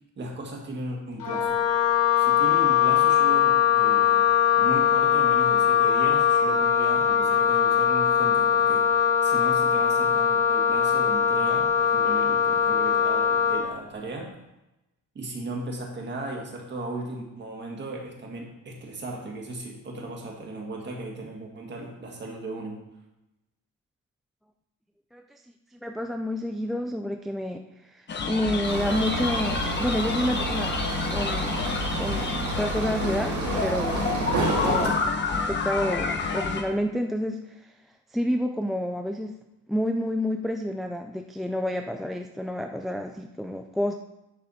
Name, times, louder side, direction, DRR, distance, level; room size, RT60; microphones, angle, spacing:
voice 1, 0.2-1.6 2.2-4.2 4.6-8.9 9.2-14.3 15.2-22.8, right 2 dB, 35° right, 0 dB, 2.0 m, -36 dB
Wind instrument woodwind instrument, 1.2-13.7, left 8 dB, 75° left, 1.4 m, -21 dB
voice 2, 25.8-30.7 31.1-33.4 33.6-34.0 34.5-34.9 35.3-37.4 38.1-39.3 39.7-43.9, equal, ahead, 4 dB, 0.3 m, -29 dB
sound 1, 28.1-36.6, left 4 dB, 35° left, 1.0 m, -29 dB
sound 2, 28.6-34.9, right 3 dB, 60° right, 2.2 m, -30 dB
10.0 x 6.5 x 4.2 m, 0.94 s
cardioid pair, 155°, 32 cm